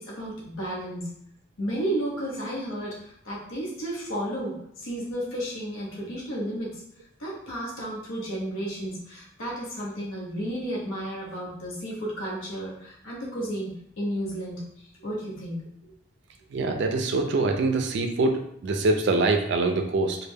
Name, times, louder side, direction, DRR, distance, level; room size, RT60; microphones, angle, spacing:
voice 1, 0.1-1.1 1.6-6.8 7.2-14.6 15.0-15.9, right 1 dB, 80° left, -5 dB, 0.8 m, -33 dB
voice 2, 16.5-20.2, right 3 dB, 55° right, 4 dB, 0.3 m, -24 dB
2.2 x 2.1 x 3.3 m, 0.70 s
head